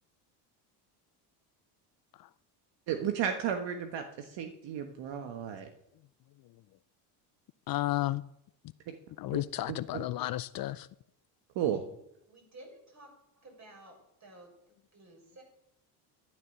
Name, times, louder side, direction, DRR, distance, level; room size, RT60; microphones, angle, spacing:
voice 1, 2.9-5.7 8.9-9.0 9.3-9.4 9.7-10.0 11.6-11.8, right 9 dB, 60° right, 1.6 m, -33 dB
voice 2, 7.7-8.2 9.2-10.9, left 15 dB, 45° left, 0.5 m, -32 dB
voice 3, 12.3-14.6 14.9-15.4, right 1 dB, 35° right, 6.8 m, -53 dB
12.0 x 11.0 x 6.7 m
supercardioid pair, 85°, 49 cm